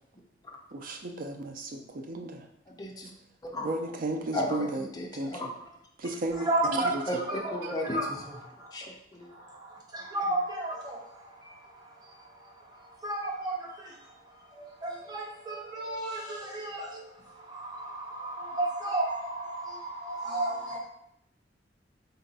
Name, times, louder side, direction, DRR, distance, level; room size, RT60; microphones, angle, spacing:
voice 1, 0.7-2.5 3.6-5.4 6.0-7.2 7.6-7.7, right 2 dB, 45° right, 4 dB, 0.4 m, -34 dB
voice 2, 2.7-3.1 3.4-3.7 4.3-5.5 6.8-9.3, left 1 dB, 20° left, -1 dB, 0.5 m, -36 dB
voice 3, 6.5-6.9 7.9-8.0 10.1-10.4 13.0-13.2 15.8-16.1 18.6-19.0 20.3-20.8, right 1 dB, 20° right, -2 dB, 0.8 m, -28 dB
3.9 x 2.2 x 3.9 m, 0.77 s
head